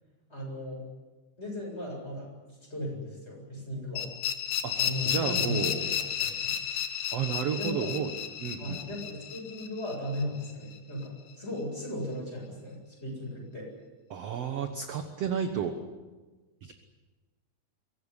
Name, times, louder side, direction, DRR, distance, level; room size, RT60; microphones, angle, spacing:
voice 1, 0.3-0.8 1.4-2.3 2.7-4.1 4.8-6.6 7.6-8.0 8.6-13.7, left 1 dB, 15° left, -1 dB, 8.1 m, -36 dB
sound 1, 4.0-10.8, left 9 dB, 60° left, 2.6 m, -33 dB
voice 2, 5.1-5.9 7.1-8.1 8.4-8.8 14.1-15.7 16.6-16.7, right 7 dB, 60° right, 7 dB, 1.8 m, -32 dB
23.5 x 17.5 x 9.9 m, 1.3 s
omnidirectional pair, 4.3 m